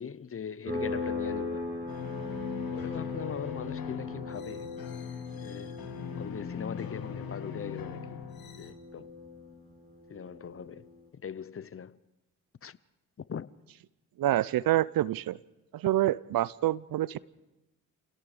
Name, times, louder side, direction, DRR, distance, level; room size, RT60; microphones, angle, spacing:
voice 1, 0.0-1.7 2.7-4.7 5.3-5.8 6.1-8.2 8.6-9.1 10.1-12.0 12.6-12.8 13.3-13.5, left 7 dB, 30° left, 0.8 m, -40 dB
sound 1, 0.7-11.0, left 3 dB, 30° right, 7.3 m, -39 dB
sound 2, 1.9-8.7, left 7 dB, 55° left, 2.9 m, -41 dB
voice 2, 14.2-15.4 15.7-17.2, right 14 dB, 55° right, 0.7 m, -27 dB
29.5 x 18.0 x 5.1 m
hypercardioid pair, 50°, 42 cm